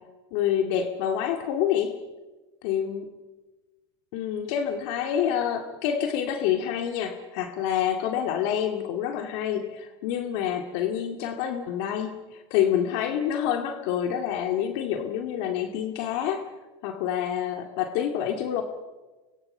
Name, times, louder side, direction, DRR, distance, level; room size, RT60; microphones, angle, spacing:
voice 1, 0.3-2.0 2.6-3.1 4.1-16.5 16.8-18.6, left 9 dB, 65° left, 5 dB, 2.3 m, -27 dB
26.0 x 23.5 x 5.6 m, 1.2 s
supercardioid pair, 110°, 14 cm